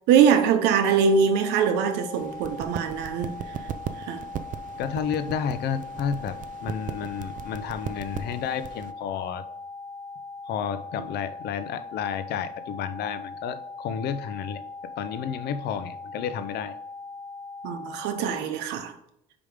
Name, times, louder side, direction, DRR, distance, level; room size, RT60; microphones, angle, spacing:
voice 1, 0.1-3.3 4.0-4.2 11.0-11.1 17.6-18.9, right 7 dB, 90° right, 0.9 m, -22 dB
sound 1, 0.8-18.4, left 3 dB, 25° left, 1.2 m, -40 dB
sound 2, 2.1-8.9, right 9 dB, 50° right, 0.5 m, -38 dB
voice 2, 4.8-9.4 10.5-16.7, left 8 dB, 75° left, 0.7 m, -31 dB
5.2 x 5.0 x 5.0 m
cardioid pair, 110°, 17 cm